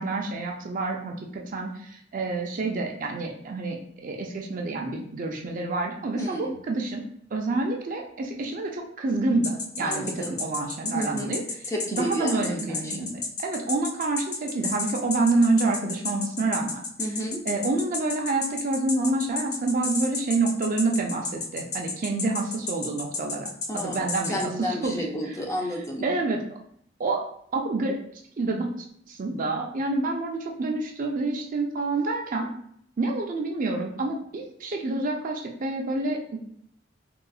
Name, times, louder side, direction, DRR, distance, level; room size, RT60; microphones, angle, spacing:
voice 1, 0.0-7.0 7.3-11.4 11.9-13.1 13.4-16.8 17.5-25.4 26.0-26.4 27.0-27.3 27.5-28.0 28.4-28.7 29.1-32.5 33.0-36.4, right 3 dB, 45° right, 1 dB, 0.4 m, -28 dB
voice 2, 6.2-6.6 9.8-10.4 10.9-11.3 11.7-13.1 17.0-17.4 23.7-26.1, equal, 15° left, 0 dB, 0.5 m, -32 dB
sound 1, 9.4-24.5, left 4 dB, 60° left, 0.7 m, -31 dB
3.7 x 2.4 x 2.3 m, 0.65 s
head